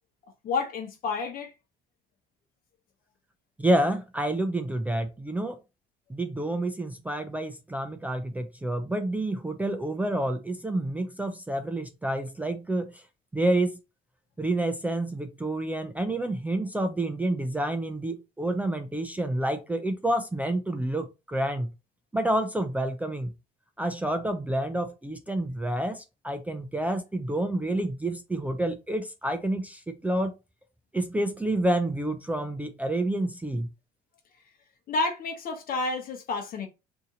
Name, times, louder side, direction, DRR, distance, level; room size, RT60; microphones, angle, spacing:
voice 1, 0.4-1.5 34.9-36.7, left 3 dB, 60° left, 1.0 m, -30 dB
voice 2, 3.6-5.6 6.1-13.0 13.3-13.8 14.4-21.7 22.1-23.3 23.8-30.3 30.9-33.7, right 1 dB, 10° right, 0.4 m, -28 dB
2.8 x 2.6 x 3.7 m
cardioid pair, 110°, 17 cm